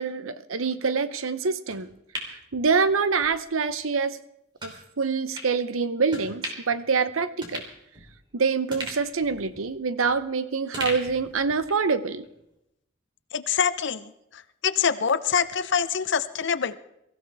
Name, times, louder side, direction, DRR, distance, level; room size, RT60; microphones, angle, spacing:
voice 1, 0.0-1.9 2.5-4.2 4.6-7.6 8.3-12.2, right 5 dB, 80° right, 13 dB, 0.8 m, -25 dB
sound 1, 1.7-3.3 3.7-3.8 4.6-4.8 5.3-5.5 6.1-6.8 7.1-7.2 7.4-8.3 8.7-10.3 10.7-11.9 12.2-12.3, equal, 25° right, 3.3 m, -38 dB
voice 2, 13.3-14.1 14.6-16.8, left 7 dB, 60° left, 12 dB, 0.7 m, -25 dB
23.0 x 15.0 x 3.5 m, 0.83 s
head